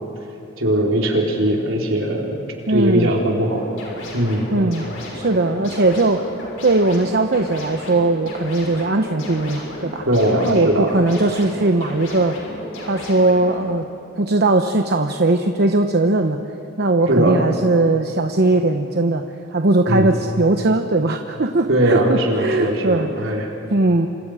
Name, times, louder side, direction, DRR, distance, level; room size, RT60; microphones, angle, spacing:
voice 1, 0.6-2.4 2.7-3.6 4.1-4.5 10.1-10.9 17.1-17.4 19.9-20.1 21.7-23.5, right 1 dB, 70° right, -1 dB, 4.0 m, -19 dB
voice 2, 2.7-3.1 4.5-4.9 5.1-6.2 6.6-10.1 10.4-12.4 12.8-13.9 14.2-16.4 16.8-19.2 19.5-24.1, right 2 dB, 50° right, 5 dB, 1.0 m, -19 dB
sound 1, 3.4-13.6, left 1 dB, 70° left, 6.8 m, -34 dB
28.5 x 26.5 x 5.0 m, 2.7 s
head